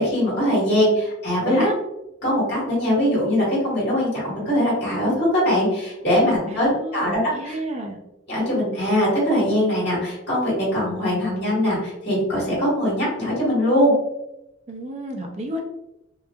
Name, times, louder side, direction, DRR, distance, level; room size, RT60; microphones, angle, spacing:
voice 1, 0.0-1.6 2.2-7.6 8.3-13.9, equal, 55° left, -7 dB, 1.4 m, -21 dB
voice 2, 6.4-8.0 14.7-15.7, right 1 dB, 30° right, 2 dB, 0.4 m, -30 dB
2.9 x 2.4 x 2.3 m, 0.90 s
head